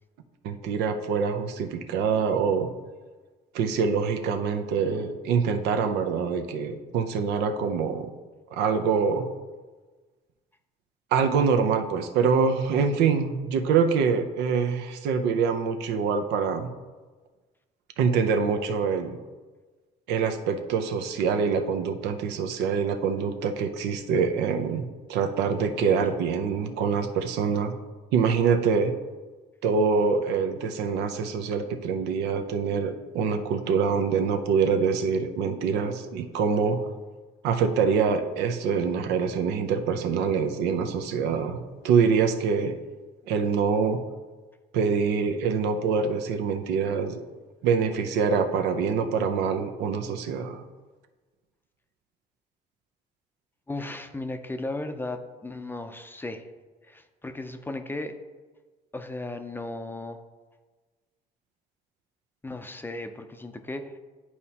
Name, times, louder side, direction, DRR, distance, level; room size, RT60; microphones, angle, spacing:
voice 1, 0.4-2.7 3.5-8.1 8.5-9.3 11.1-16.7 18.0-19.2 20.1-24.8 25.1-27.7 28.1-28.9 29.6-36.8 37.4-42.7 43.3-44.0 44.7-47.2 47.6-50.6, right 5 dB, 85° right, 7 dB, 0.6 m, -25 dB
voice 2, 53.7-56.4 56.9-58.1 58.9-60.2 62.4-64.0, left 2 dB, 10° left, 7 dB, 0.5 m, -35 dB
11.0 x 4.2 x 2.8 m, 1.3 s
cardioid pair, 110°, 17 cm